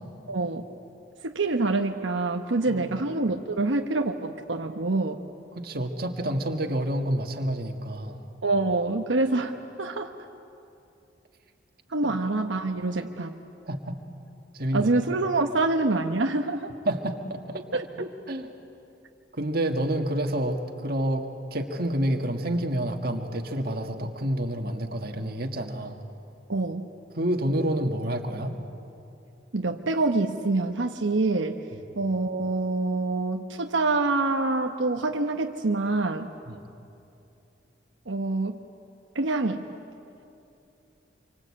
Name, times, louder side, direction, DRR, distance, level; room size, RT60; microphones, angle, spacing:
voice 1, 0.3-0.6 1.2-5.2 8.4-10.1 11.9-13.3 14.7-16.7 17.7-17.8 26.5-26.9 29.5-31.6 31.9-36.3 38.1-38.6 39.1-39.6, right 2 dB, 90° right, 4 dB, 1.0 m, -26 dB
voice 2, 5.5-8.3 12.0-12.1 13.7-13.9 14.5-14.9 16.9-17.6 18.0-18.5 19.4-21.2 21.5-26.0 27.2-28.6 36.5-36.7, right 1 dB, 55° right, 3 dB, 1.9 m, -28 dB
27.0 x 24.5 x 8.6 m, 2.7 s
head